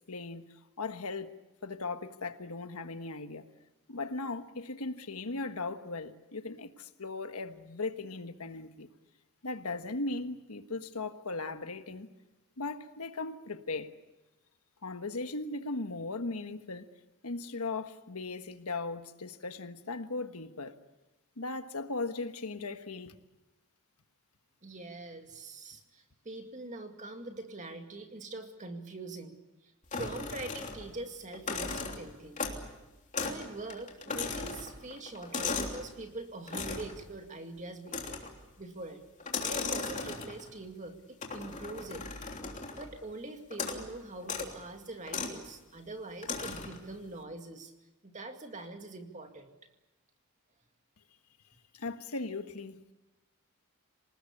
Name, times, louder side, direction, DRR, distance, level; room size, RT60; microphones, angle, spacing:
voice 1, 0.1-0.4 0.8-1.3 1.6-3.5 3.9-8.9 9.4-12.1 12.6-13.9 14.8-16.9 17.2-20.8 21.4-23.1 51.7-52.8, left 3 dB, 80° left, 1.4 m, -38 dB
voice 2, 24.6-29.4 29.6-32.4 33.2-38.2 38.6-39.1 39.4-42.0 42.7-47.7 48.0-49.5, right 2 dB, 35° right, 2.2 m, -43 dB
sound 1, 29.9-31.0 31.3-32.7 33.1-33.4 33.7-35.8 36.5-37.0 37.9-38.4 39.2-40.5 41.2-42.9 43.5-43.9 44.2-44.5 45.1-45.4 46.2-46.8, left 4 dB, 35° left, 3.2 m, -37 dB
27.0 x 19.0 x 8.5 m
head